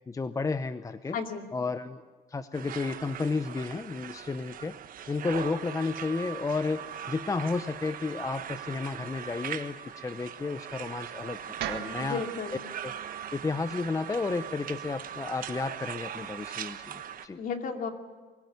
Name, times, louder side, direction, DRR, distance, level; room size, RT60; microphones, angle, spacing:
voice 1, 0.1-1.2 1.5-2.0 2.3-4.8 5.1-12.2 12.8-12.9 13.3-17.4, left 4 dB, 20° left, 11 dB, 0.8 m, -32 dB
voice 2, 1.1-1.4 12.0-12.7 17.3-17.9, left 5 dB, 55° left, 4 dB, 2.6 m, -34 dB
sound 1, 2.5-17.3, right 9 dB, 55° right, 1.2 m, -40 dB
sound 2, 11.6-15.8, right 11 dB, 80° right, 1.8 m, -42 dB
24.0 x 16.5 x 9.5 m, 1.4 s
cardioid pair, 110°, 17 cm